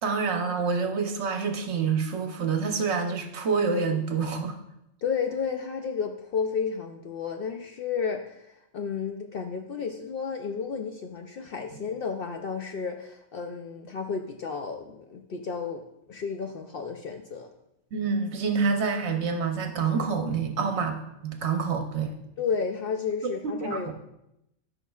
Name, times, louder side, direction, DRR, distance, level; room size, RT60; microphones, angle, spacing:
voice 1, 0.0-4.6 17.9-22.2 23.4-23.8, right 5 dB, 65° right, 5 dB, 1.0 m, -27 dB
voice 2, 5.0-17.5 22.4-23.9, left 6 dB, 60° left, 4 dB, 0.6 m, -32 dB
12.5 x 5.5 x 2.3 m, 0.84 s
omnidirectional pair, 1.3 m